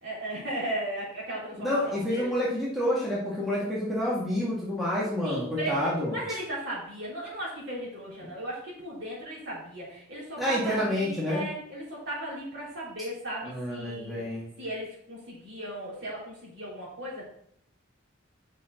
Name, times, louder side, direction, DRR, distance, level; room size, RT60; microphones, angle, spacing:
voice 1, 0.0-2.3 5.2-14.2 14.6-17.2, right 1 dB, 60° right, -6 dB, 3.7 m, -36 dB
voice 2, 1.6-6.2 10.4-11.4 13.4-14.5, left 1 dB, ahead, -7 dB, 1.9 m, -28 dB
7.5 x 6.2 x 3.9 m, 0.66 s
head